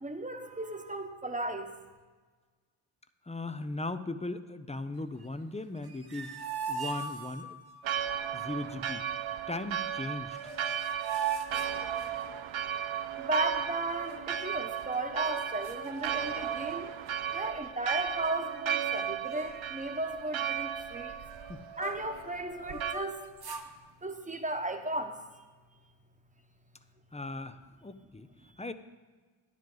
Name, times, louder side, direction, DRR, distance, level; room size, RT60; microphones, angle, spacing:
voice 1, 0.0-1.7 13.2-16.9 17.3-21.1 21.8-23.2 24.0-25.2, right 2 dB, 15° right, 5 dB, 1.1 m, -35 dB
voice 2, 3.3-6.3 6.7-7.6 8.3-9.1 9.5-10.4 21.5-21.6 27.1-28.3 28.6-28.7, left 2 dB, 15° left, 11 dB, 0.5 m, -38 dB
sound 1, 5.8-7.8 10.0-10.1 10.3-12.5 13.9-14.7 15.3-15.4 15.6-16.7 17.1-17.4 18.0-18.6 18.9-19.1 19.3-22.2 22.6-23.7, right 6 dB, 50° right, 1.0 m, -40 dB
Church bell, 7.8-23.0, right 9 dB, 70° right, 0.6 m, -35 dB
10.5 x 10.0 x 3.9 m, 1.4 s
cardioid pair, 50°, 50 cm